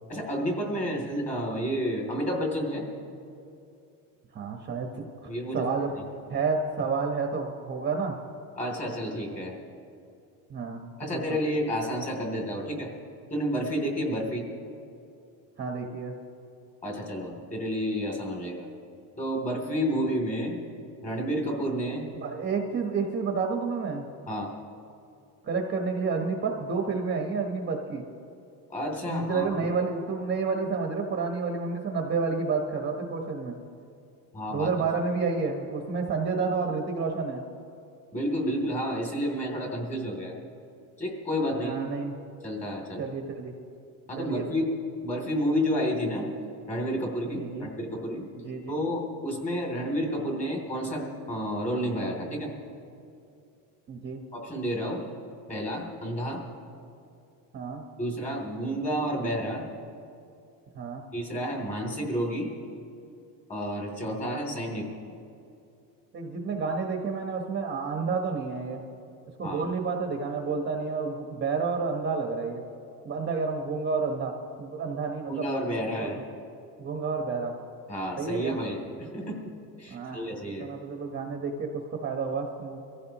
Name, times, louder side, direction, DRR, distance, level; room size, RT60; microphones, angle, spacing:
voice 1, 0.1-2.8 5.3-5.7 8.6-9.5 11.0-12.9 13.3-14.4 16.8-18.7 19.2-20.6 21.0-22.1 24.3-24.5 28.7-29.7 34.3-34.7 38.1-40.3 41.0-41.8 42.4-43.0 44.1-44.7 45.0-46.3 46.7-48.3 48.7-52.5 54.3-55.0 55.5-56.4 58.0-59.7 61.1-62.5 63.5-64.9 69.4-69.7 75.3-76.2 77.9-79.5 79.8-80.7, equal, 15° left, 0 dB, 3.1 m, -30 dB
voice 2, 4.3-5.0 5.5-6.0 6.3-8.2 10.5-11.4 15.6-16.1 22.1-24.1 25.4-28.0 29.1-33.5 34.5-37.4 41.5-42.1 43.0-43.5 44.2-44.5 47.3-47.7 48.4-48.8 53.9-54.2 57.5-57.8 60.7-61.0 66.1-68.8 69.4-72.6 73.0-75.5 76.0-76.2 76.8-77.6 78.2-78.5 79.9-82.8, right 4 dB, 25° right, 2 dB, 1.2 m, -30 dB
24.0 x 15.0 x 3.0 m, 2.6 s
cardioid pair, 155°, 42 cm